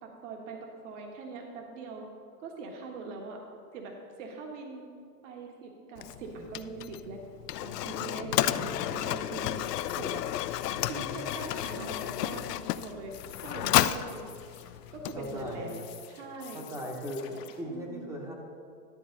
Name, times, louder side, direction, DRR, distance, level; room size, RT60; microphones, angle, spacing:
voice 1, 0.0-2.1 2.4-3.4 3.7-4.9 5.2-7.2 7.6-9.6 10.0-10.2 10.8-14.3 14.9-15.8 16.1-16.6 17.3-18.2, right 3 dB, 50° right, 2 dB, 1.5 m, -42 dB
Mechanisms, 6.0-15.6, left 13 dB, 80° left, 0.5 m, -32 dB
voice 2, 8.2-8.9 10.7-11.3 15.1-15.7 16.5-17.2 17.6-18.3, equal, 5° right, -1 dB, 0.9 m, -39 dB
sound 1, 9.5-17.6, left 11 dB, 40° left, 0.9 m, -52 dB
12.0 x 7.8 x 3.9 m, 2.3 s
hypercardioid pair, 155°, 47 cm